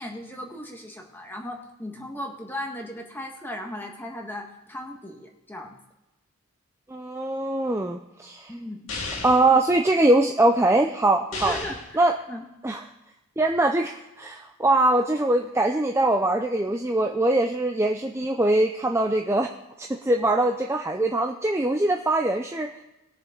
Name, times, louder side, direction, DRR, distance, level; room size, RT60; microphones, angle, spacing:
voice 1, 0.0-5.8 8.5-8.9 11.4-12.4, left 1 dB, 10° left, 1 dB, 1.5 m, -37 dB
voice 2, 6.9-8.5 9.2-11.6 11.9-12.1 12.6-12.8 13.4-19.5 19.8-22.8, right 2 dB, 10° right, 3 dB, 0.5 m, -22 dB
sound 1, 8.9-9.5 11.3-11.9, left 3 dB, 65° left, 2.4 m, -33 dB
20.5 x 6.9 x 3.9 m, 0.96 s
head